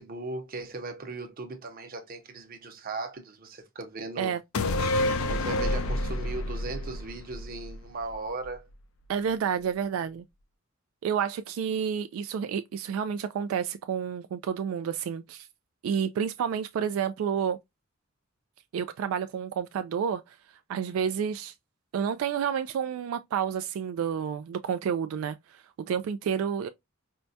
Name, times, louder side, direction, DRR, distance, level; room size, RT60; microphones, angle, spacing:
voice 1, 0.0-4.3 5.3-8.7, right 3 dB, 45° right, 0.7 m, -38 dB
sound 1, 4.5-8.1 8.4-8.5, left 2 dB, 85° left, 0.4 m, -28 dB
voice 2, 9.1-10.3 11.0-15.5 15.8-17.6 18.7-20.4 20.7-21.5 21.9-26.7, right 7 dB, 90° right, 0.3 m, -30 dB
4.5 x 2.1 x 2.6 m
head